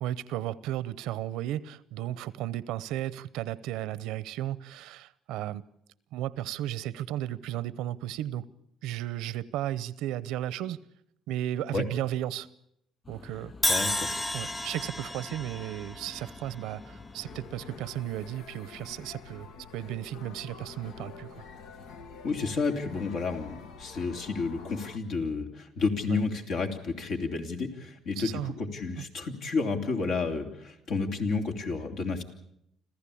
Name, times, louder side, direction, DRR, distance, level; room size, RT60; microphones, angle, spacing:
voice 1, 0.0-5.7 6.1-8.4 8.8-10.8 11.3-12.5 13.1-13.5 14.3-19.5 19.7-21.4 26.1-26.2 28.2-28.5 29.0-29.1, right 13 dB, 90° right, 0.8 m, -34 dB
sound 1, 13.0-18.2, left 3 dB, 35° left, 7.2 m, -49 dB
Crash cymbal, 13.6-17.7, left 1 dB, 15° left, 1.1 m, -32 dB
voice 2, 13.7-14.1 22.2-32.2, left 4 dB, 70° left, 3.3 m, -31 dB
sound 2, 17.2-25.0, left 5 dB, 85° left, 1.4 m, -47 dB
27.0 x 15.0 x 8.6 m
cardioid pair, 110°, 0 cm